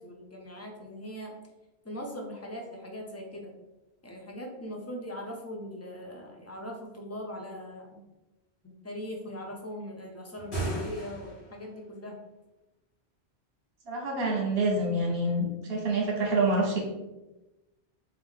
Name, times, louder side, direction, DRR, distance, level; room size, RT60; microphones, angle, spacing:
voice 1, 0.0-1.3 1.8-3.5 4.0-8.0 8.6-12.2, equal, 20° left, 0 dB, 0.5 m, -40 dB
sound 1, 10.3-11.6, right 2 dB, 85° left, 2.1 m, -35 dB
voice 2, 13.9-16.8, right 2 dB, 65° right, -1 dB, 1.2 m, -27 dB
3.4 x 3.2 x 3.6 m, 1.0 s
omnidirectional pair, 1.1 m